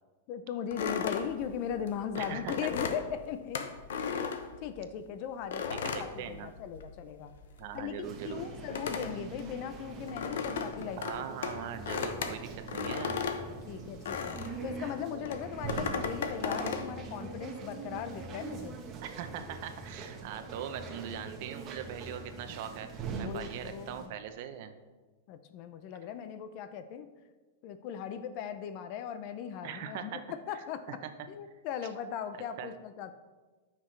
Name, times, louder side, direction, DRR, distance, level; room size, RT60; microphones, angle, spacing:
voice 1, 0.3-3.7 4.0-4.3 4.6-7.3 7.7-11.0 13.7-18.8 23.2-24.2 25.3-27.1 27.6-31.0 31.3-33.1, left 8 dB, 45° left, 11 dB, 0.6 m, -38 dB
sound 1, 0.7-5.0 5.5-7.0 7.2-14.6 15.2-16.9, left 6 dB, 80° left, 0.9 m, -36 dB
voice 2, 2.2-2.7 5.7-6.5 7.6-8.5 11.0-13.3 19.0-24.7 29.6-30.2 30.5-31.1 32.6-32.7, right 9 dB, 55° right, 9 dB, 0.7 m, -41 dB
sound 2, 8.0-24.1, right 5 dB, 25° right, 1.1 m, -43 dB
sound 3, 11.5-12.3 12.8-13.5 14.0-14.8 15.3-16.1 16.6-17.4 17.9-18.7 19.2-20.0 20.5-21.2 21.7-22.4, left 4 dB, 5° left, 0.8 m, -49 dB
13.5 x 5.9 x 3.3 m, 1.3 s
supercardioid pair, 150°, 0 cm